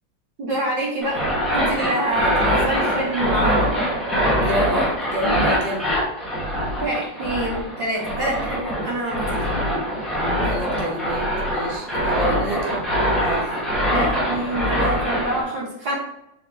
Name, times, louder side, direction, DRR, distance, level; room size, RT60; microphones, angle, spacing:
voice 1, 0.4-1.2 1.5-3.7 6.8-9.5 13.9-16.0, right 1 dB, 85° right, -4 dB, 2.2 m, -26 dB
sound 1, 1.0-15.4, equal, ahead, 0.4 m, -23 dB
voice 2, 4.4-6.0 10.4-13.5, right 1 dB, 35° right, -2 dB, 0.9 m, -28 dB
4.0 x 3.6 x 3.3 m, 0.83 s
omnidirectional pair, 2.1 m